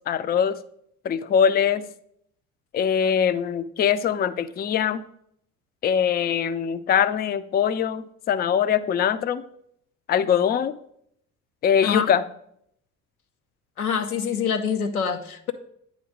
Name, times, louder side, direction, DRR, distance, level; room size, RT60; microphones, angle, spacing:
voice 1, 0.1-0.6 1.0-1.9 2.7-5.0 5.8-9.4 10.1-10.8 11.6-12.2, left 8 dB, 25° left, 14 dB, 0.4 m, -22 dB
voice 2, 13.8-15.5, left 6 dB, 90° left, 6 dB, 0.6 m, -25 dB
9.2 x 3.1 x 6.3 m, 0.70 s
figure-of-eight pair, 50°, 42 cm